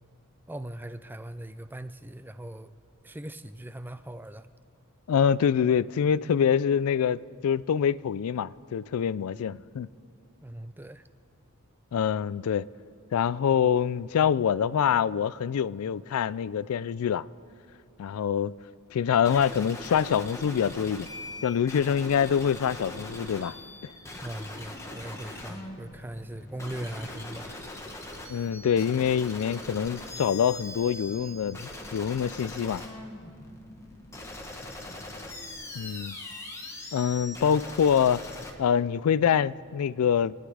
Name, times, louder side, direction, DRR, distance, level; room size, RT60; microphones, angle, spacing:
voice 1, 0.5-2.7 3.0-4.5 10.4-11.1 24.2-27.6, right 1 dB, 10° right, 0.4 m, -40 dB
voice 2, 5.1-9.9 11.9-12.7 13.1-17.2 18.0-18.5 18.9-21.1 21.4-23.5 28.3-32.8 35.8-36.2 36.9-38.2 38.6-40.4, left 8 dB, 80° left, 0.3 m, -25 dB
sound 1, 19.2-38.5, left 2 dB, 15° left, 1.3 m, -41 dB
sound 2, 24.7-35.7, left 1 dB, 40° left, 1.3 m, -55 dB
27.5 x 9.9 x 4.9 m
head